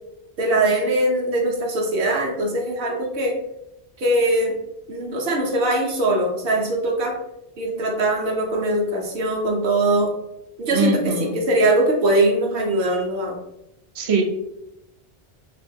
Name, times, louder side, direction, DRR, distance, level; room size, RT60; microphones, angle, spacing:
voice 1, 0.4-3.4 4.0-4.6 4.9-7.1 7.6-10.2 10.6-13.4, right 1 dB, 65° right, 0 dB, 0.8 m, -21 dB
voice 2, 10.7-11.4 13.9-14.2, right 3 dB, 50° right, 2 dB, 0.4 m, -21 dB
3.0 x 2.5 x 2.6 m, 0.86 s
omnidirectional pair, 1.1 m